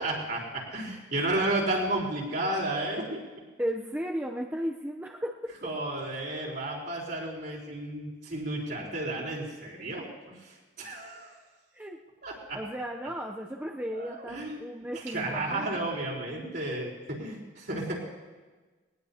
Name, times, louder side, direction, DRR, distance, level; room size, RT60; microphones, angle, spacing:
voice 1, 0.0-3.2 5.6-10.1 10.4-11.3 12.2-12.6 13.9-14.6 14.9-18.1, right 2 dB, 55° right, -3 dB, 4.0 m, -32 dB
voice 2, 3.6-5.5 11.7-12.0 12.5-15.9, equal, 10° right, 0 dB, 0.6 m, -35 dB
20.5 x 19.0 x 2.8 m, 1.3 s
head